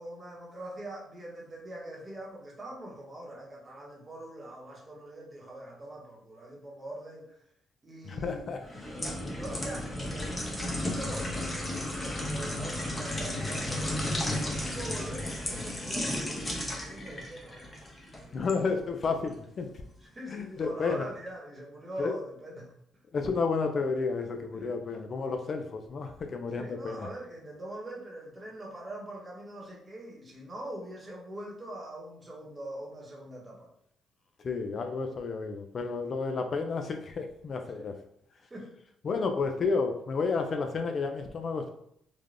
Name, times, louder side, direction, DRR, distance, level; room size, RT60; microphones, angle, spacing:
voice 1, 0.0-7.4 7.8-8.5 9.3-17.7 18.2-18.3 20.0-22.7 24.5-24.8 26.5-33.7 35.8-36.0 37.7-37.9 38.5-38.7, right 1 dB, 25° right, -2 dB, 0.9 m, -43 dB
voice 2, 8.0-8.6 18.3-19.7 20.3-21.1 22.0-22.1 23.1-27.1 34.4-38.0 39.0-41.7, left 4 dB, 50° left, 5 dB, 0.3 m, -31 dB
sound 1, 8.6-18.6 19.0-19.2, left 1 dB, 20° left, 0.7 m, -34 dB
3.2 x 2.2 x 2.4 m, 0.69 s
cardioid pair, 90°, 0 cm